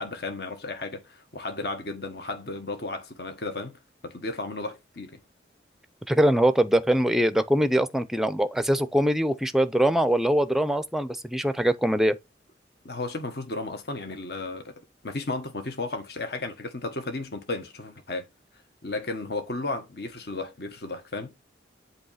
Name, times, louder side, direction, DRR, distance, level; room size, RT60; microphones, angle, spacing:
voice 1, 0.0-5.2 12.8-18.3 18.8-21.3, left 2 dB, 60° left, 1.3 m, -34 dB
voice 2, 6.1-12.2, right 1 dB, ahead, 0.5 m, -23 dB
8.0 x 2.9 x 5.6 m
head